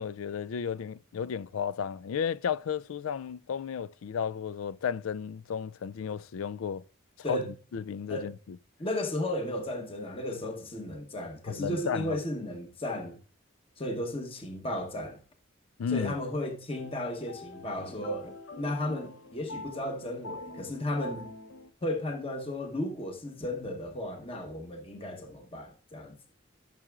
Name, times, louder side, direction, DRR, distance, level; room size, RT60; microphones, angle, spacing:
voice 1, 0.0-6.8 7.3-7.4 7.7-8.3 11.5-12.2 15.8-16.1, left 7 dB, 85° left, 0.4 m, -33 dB
voice 2, 8.8-13.2 13.8-15.2 15.9-21.3 21.8-26.2, left 1 dB, 25° left, 1.0 m, -34 dB
sound 1, 16.7-21.7, left 2 dB, 65° left, 0.9 m, -45 dB
12.5 x 6.8 x 2.4 m
head